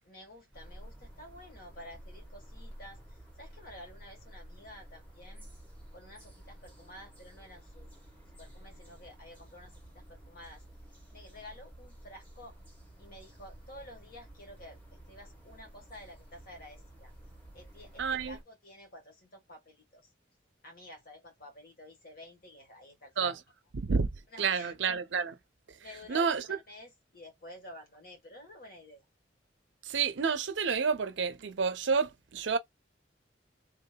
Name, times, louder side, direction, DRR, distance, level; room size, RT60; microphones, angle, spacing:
voice 1, 0.0-5.5 5.9-7.9 8.4-10.6 11.1-12.6 13.0-17.1 17.5-20.1 20.6-23.3 24.3-24.7 25.8-29.0, left 1 dB, 50° left, 1.5 m, -51 dB
sound 1, 0.5-18.4, right 1 dB, 10° left, 1.2 m, -52 dB
voice 2, 18.0-18.4 23.2-23.4 23.7-24.1 24.4-25.4 26.1-26.6 29.8-32.6, right 5 dB, 80° right, 0.6 m, -29 dB
3.5 x 2.7 x 2.2 m
head